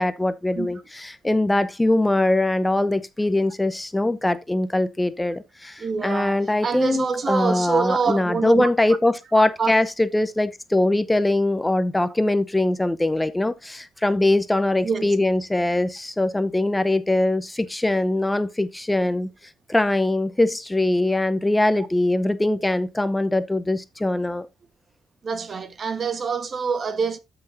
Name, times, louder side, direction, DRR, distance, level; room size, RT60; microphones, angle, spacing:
voice 1, 0.0-19.3 19.7-24.5, left 2 dB, 10° left, 0.7 m, -22 dB
voice 2, 5.8-8.7 9.3-9.7 14.8-15.1 25.2-27.2, right 5 dB, 45° right, 1.3 m, -26 dB
13.0 x 5.9 x 2.7 m
cardioid pair, 90°, 0 cm